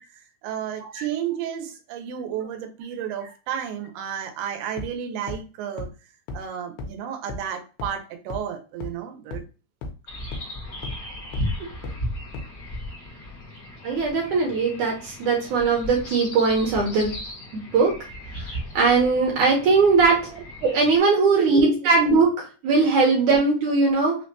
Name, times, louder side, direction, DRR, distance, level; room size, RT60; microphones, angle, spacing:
voice 1, 0.4-5.9 6.3-9.4 20.3-20.4 21.3-21.8, right 8 dB, 90° right, 5 dB, 2.7 m, -32 dB
sound 1, 4.8-4.9 5.3-5.4 5.8-5.9 6.3-6.4 6.8-6.9 7.3-7.4 7.8-7.9 8.3-8.4 8.8-8.9 9.3-9.4 9.8-9.9 10.3-10.4 10.8-10.9 11.3-11.4 11.8-11.9 12.3-12.4, left 2 dB, 80° left, 2.8 m, -33 dB
sound 2, 10.1-21.0, left 1 dB, 55° left, 0.9 m, -36 dB
voice 2, 13.8-17.1 17.5-17.9 18.8-20.2 20.6-22.3 22.6-24.2, right 4 dB, 75° right, -2 dB, 1.8 m, -20 dB
6.3 x 2.2 x 2.7 m, 0.35 s
omnidirectional pair, 4.6 m